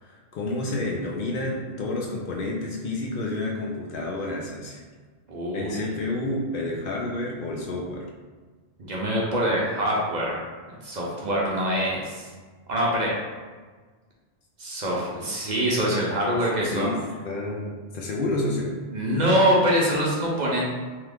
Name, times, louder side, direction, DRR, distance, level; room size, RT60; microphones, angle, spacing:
voice 1, 0.0-4.8 5.5-8.0 16.0-16.4 16.7-16.9 17.2-18.7, left 2 dB, 65° left, -1 dB, 0.7 m, -30 dB
voice 2, 5.3-5.9 8.8-10.4 10.7-12.3 12.7-13.1 14.6-16.9 18.9-20.6, equal, 50° right, -4 dB, 0.7 m, -24 dB
2.9 x 2.4 x 3.3 m, 1.4 s
omnidirectional pair, 1.1 m